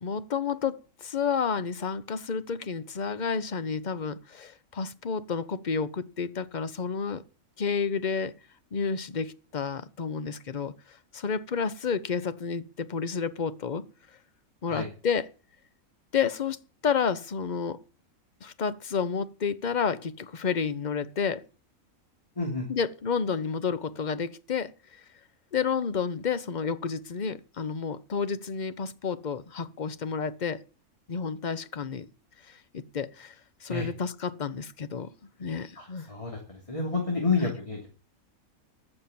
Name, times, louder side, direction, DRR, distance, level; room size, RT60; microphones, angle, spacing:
voice 1, 0.0-7.2 7.6-8.3 8.7-13.8 14.6-15.3 16.1-17.8 18.4-21.4 22.7-24.7 25.5-30.6 31.1-32.1 32.5-33.3 33.6-35.1 35.4-36.1 37.4-37.5, left 6 dB, 40° left, 0.8 m, -30 dB
voice 2, 22.4-22.7 33.7-33.9 35.8-37.9, left 4 dB, 20° left, 3.0 m, -30 dB
15.0 x 6.8 x 8.7 m
omnidirectional pair, 1.5 m